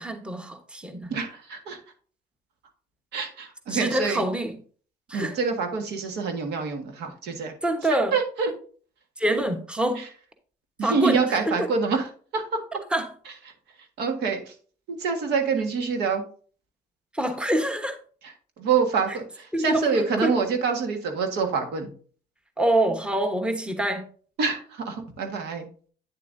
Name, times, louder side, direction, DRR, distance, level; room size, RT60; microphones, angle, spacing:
voice 1, 0.0-1.1 3.7-4.6 5.1-5.4 7.6-8.2 9.2-10.0 10.8-11.7 12.9-13.1 17.1-18.0 19.1-19.2 19.5-20.3 22.6-24.0, right 1 dB, 5° right, 1.1 m, -26 dB
voice 2, 1.1-1.8 3.1-4.2 5.1-7.5 8.1-8.5 10.8-12.1 12.3-12.4 14.0-14.4 14.9-16.2 18.6-21.9 24.4-25.7, right 5 dB, 80° right, 1.6 m, -26 dB
9.0 x 7.1 x 2.6 m
cardioid pair, 110°, 17 cm